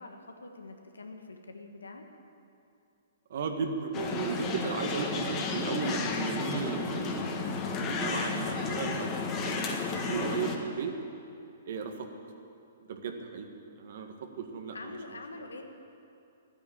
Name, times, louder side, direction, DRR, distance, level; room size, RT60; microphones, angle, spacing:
voice 1, 0.0-2.0 14.7-15.6, left 3 dB, 90° left, 4 dB, 1.5 m, -45 dB
voice 2, 3.3-7.5 7.8-10.9 11.7-12.1 12.9-13.5 13.8-15.0, right 5 dB, 60° right, 5 dB, 1.6 m, -35 dB
sound 1, 3.9-10.6, left 4 dB, 30° left, 1.6 m, -32 dB
13.0 x 9.1 x 8.9 m, 2.7 s
hypercardioid pair, 125°, 0 cm